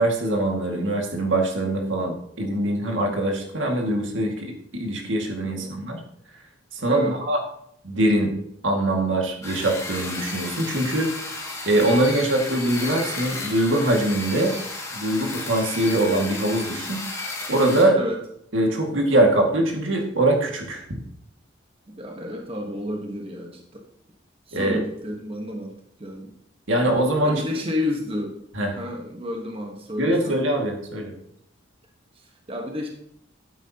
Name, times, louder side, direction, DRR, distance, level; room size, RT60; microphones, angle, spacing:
voice 1, 0.0-6.0 6.7-7.4 7.8-8.3 8.6-11.1 11.7-14.5 14.9-17.1 17.5-18.0 18.5-20.8 24.5-24.8 26.7-27.4 28.6-28.7 30.0-31.1, right 1 dB, 85° right, 1 dB, 2.0 m, -22 dB
voice 2, 6.9-7.2 17.9-18.2 22.0-23.8 24.5-26.3 27.2-28.4 28.8-30.4 32.1-32.9, left 1 dB, 30° right, 1 dB, 1.2 m, -31 dB
sound 1, 9.4-17.8, left 3 dB, 15° left, 2.1 m, -33 dB
11.5 x 9.0 x 2.9 m, 0.71 s
head